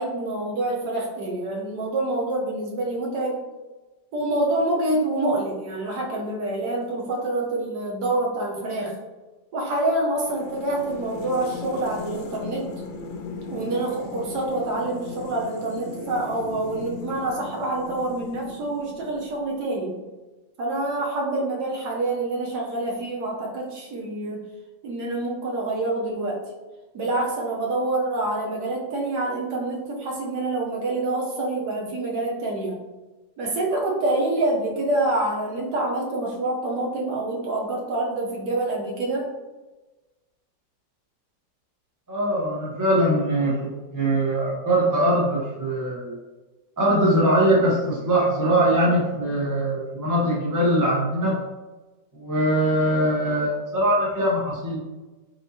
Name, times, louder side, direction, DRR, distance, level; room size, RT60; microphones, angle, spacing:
voice 1, 0.0-3.4 4.1-8.9 9.5-12.7 13.5-20.0 20.6-24.4 24.8-26.4 26.9-32.8 33.4-39.3, right 2 dB, 65° right, -2 dB, 1.3 m, -26 dB
sound 1, 10.2-19.5, left 3 dB, 85° left, 1.3 m, -38 dB
voice 2, 42.1-46.2 46.8-51.4 52.1-54.8, right 1 dB, 20° right, -5 dB, 0.6 m, -22 dB
4.3 x 4.1 x 2.7 m, 1.2 s
omnidirectional pair, 2.0 m